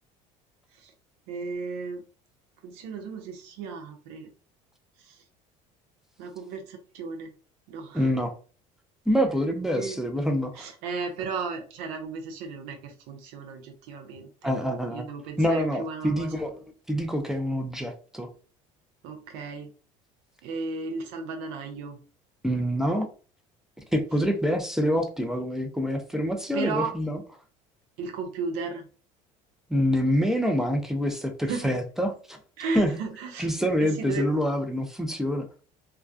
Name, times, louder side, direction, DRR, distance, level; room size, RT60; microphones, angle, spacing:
voice 1, 1.3-2.0 2.6-4.3 5.0-5.2 6.2-7.3 7.7-8.1 9.8-10.0 10.5-14.5 14.9-16.4 19.0-19.7 20.4-22.0 26.5-26.9 28.0-28.9 31.5-31.8 32.6-33.5 33.8-34.3, right 4 dB, 75° right, 5 dB, 0.4 m, -35 dB
voice 2, 7.9-8.3 9.1-10.7 14.4-15.1 15.4-16.5 16.9-18.3 22.4-23.1 23.9-27.2 29.7-32.4 32.7-32.9 33.4-35.5, equal, 5° right, 5 dB, 0.5 m, -26 dB
2.2 x 2.2 x 2.5 m, 0.38 s
supercardioid pair, 90°, 17 cm